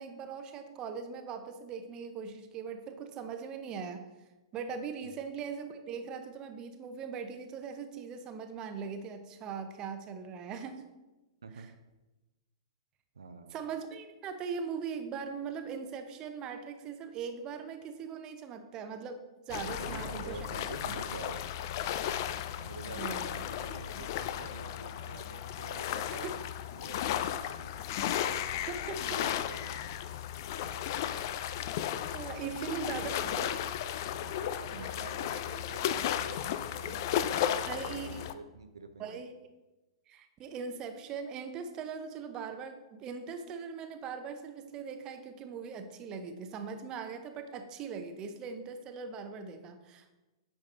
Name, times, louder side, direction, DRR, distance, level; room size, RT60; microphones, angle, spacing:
voice 1, 0.0-4.0 4.5-10.8 11.5-11.7 13.5-20.4 23.0-23.3 26.2-26.3 28.7-29.2 32.1-33.1 33.4-33.5 34.7-34.9 37.7-38.3 39.0-39.5 40.1-50.1, right 6 dB, 30° right, 8 dB, 0.7 m, -40 dB
voice 2, 13.2-13.6 19.8-21.5 22.6-26.4 26.7-27.7 28.6-28.7 29.0-30.0 32.3-33.6 34.2-39.2, right 4 dB, 75° right, 8 dB, 0.6 m, -47 dB
sound 1, 19.5-38.3, left 10 dB, 45° left, 0.4 m, -35 dB
8.7 x 5.7 x 2.9 m, 1.1 s
figure-of-eight pair, 105°, 3 cm